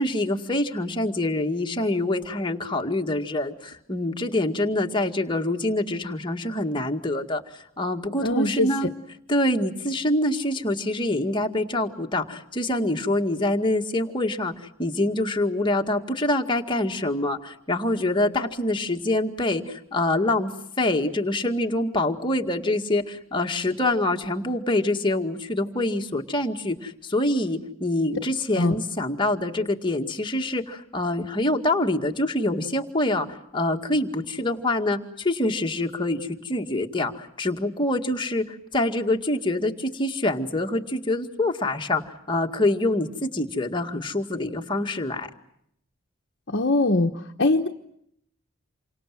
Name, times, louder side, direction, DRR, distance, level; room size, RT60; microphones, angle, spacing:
voice 1, 0.0-8.9 9.3-14.5 14.8-20.5 20.8-45.3, left 1 dB, 20° left, 3 dB, 2.0 m, -25 dB
voice 2, 8.2-8.7 28.6-28.7 46.5-47.1 47.4-47.7, left 2 dB, 55° left, 3 dB, 1.2 m, -21 dB
29.0 x 25.0 x 7.7 m, 0.73 s
head